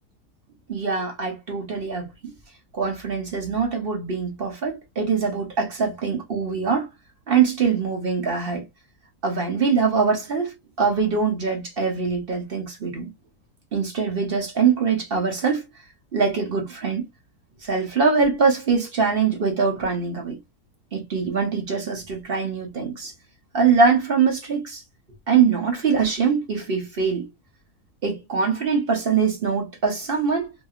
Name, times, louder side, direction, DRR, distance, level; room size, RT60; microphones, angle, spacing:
voice 1, 0.7-2.1 2.7-6.9 7.3-8.6 9.2-13.1 13.7-15.6 16.1-17.0 17.6-20.4 20.9-23.1 23.5-24.8 25.3-27.3 28.0-30.5, right 5 dB, 45° right, 0.8 m, -23 dB
2.8 x 2.6 x 2.3 m
omnidirectional pair, 1.7 m